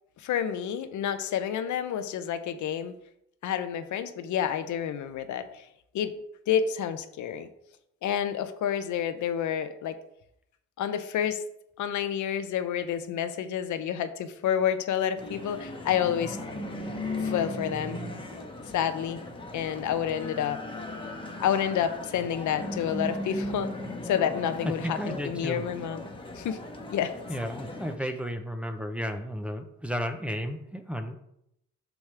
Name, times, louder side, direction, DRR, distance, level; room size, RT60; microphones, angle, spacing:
voice 1, 0.2-2.9 3.4-5.7 5.9-6.1 6.5-7.5 8.0-10.0 10.8-11.4 11.8-16.4 17.2-18.0 18.7-19.2 19.5-20.6 21.4-23.7 24.0-26.1 26.4-26.6 26.9-27.1, left 9 dB, 75° left, 10 dB, 0.8 m, -29 dB
sound 1, 15.2-28.0, left 1 dB, 15° left, 1.3 m, -37 dB
voice 2, 24.6-25.6 27.3-31.2, equal, 5° right, 6 dB, 0.8 m, -33 dB
7.1 x 6.1 x 3.4 m, 0.77 s
cardioid pair, 90°, 30 cm